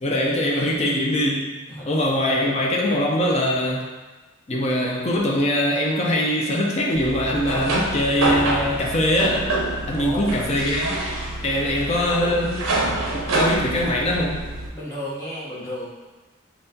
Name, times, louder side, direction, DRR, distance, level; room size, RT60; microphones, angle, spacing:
voice 1, 0.0-1.5 1.9-3.9 4.5-9.5 9.9-11.0 11.4-12.7 13.1-14.4, left 1 dB, 30° left, -2 dB, 0.4 m, -22 dB
voice 2, 2.2-2.5 9.9-10.3 14.7-15.9, left 1 dB, 15° left, -9 dB, 1.0 m, -33 dB
sound 1, 6.9-14.7, right 2 dB, 80° right, 0.7 m, -26 dB
5.5 x 2.4 x 2.7 m, 1.2 s
head